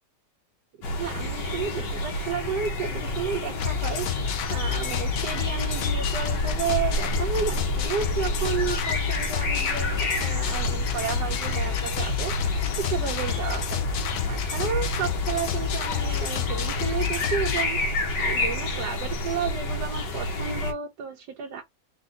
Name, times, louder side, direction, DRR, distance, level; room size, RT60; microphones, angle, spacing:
sound 1, 0.8-20.7, left 1 dB, 80° left, 1.7 m, -29 dB
voice 1, 1.0-21.6, right 7 dB, 75° right, 1.3 m, -32 dB
sound 2, 3.6-17.6, left 8 dB, 65° left, 1.0 m, -29 dB
4.0 x 2.7 x 3.8 m
omnidirectional pair, 1.9 m